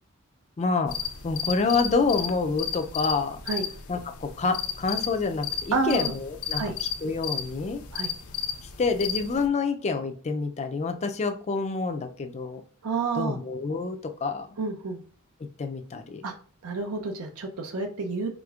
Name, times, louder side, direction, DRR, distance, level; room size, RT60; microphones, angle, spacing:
voice 1, 0.6-1.0 1.2-3.4 3.9-7.9 8.6-12.6 13.2-14.5 15.6-16.2, left 4 dB, 30° left, 7 dB, 0.4 m, -28 dB
sound 1, 0.9-9.5, left 8 dB, 90° left, 0.7 m, -34 dB
voice 2, 5.7-6.1 6.6-6.7 7.9-8.1 12.8-13.4 14.6-15.0 16.2-16.3 16.6-18.3, right 4 dB, 80° right, 4 dB, 0.6 m, -29 dB
5.0 x 3.5 x 2.4 m, 0.44 s
head